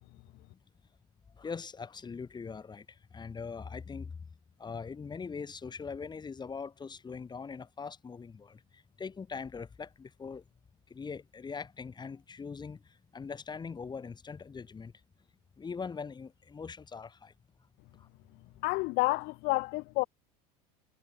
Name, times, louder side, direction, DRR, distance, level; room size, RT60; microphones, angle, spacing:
voice 1, 1.4-2.9 3.1-4.1 4.6-10.4 10.9-12.8 13.1-14.9 15.6-17.3, left 5 dB, 20° left, 7.1 m, -41 dB
voice 2, 18.6-20.0, left 24 dB, 60° left, 1.3 m, -29 dB
supercardioid pair, 100°, 19 cm